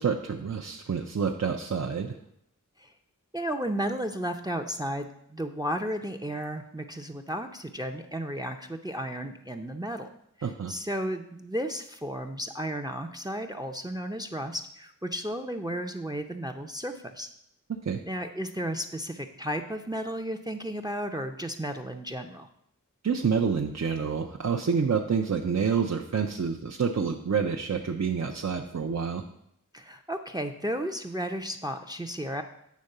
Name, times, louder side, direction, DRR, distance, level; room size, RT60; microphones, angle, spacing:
voice 1, 0.0-2.2 10.4-10.7 17.8-18.0 23.0-29.2, right 6 dB, 55° right, 1 dB, 0.6 m, -28 dB
voice 2, 3.3-10.1 10.4-17.3 18.0-22.5 29.7-32.4, equal, 10° right, 7 dB, 0.5 m, -33 dB
8.4 x 3.7 x 6.5 m, 0.74 s
wide cardioid pair, 50°, 32 cm